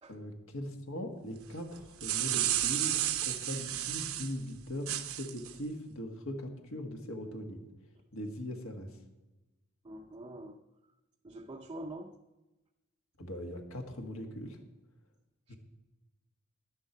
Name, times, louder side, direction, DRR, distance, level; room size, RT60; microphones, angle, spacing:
voice 1, 0.1-7.7 8.1-8.9 13.2-14.6 15.5-15.6, equal, 75° left, 4 dB, 1.6 m, -40 dB
sound 1, 1.8-4.3 4.9-5.5, right 12 dB, 75° right, 0.8 m, -32 dB
voice 2, 9.8-10.6 11.2-12.2 15.5-15.6, right 1 dB, 20° right, 2 dB, 0.5 m, -45 dB
11.0 x 7.5 x 7.2 m, 1.1 s
head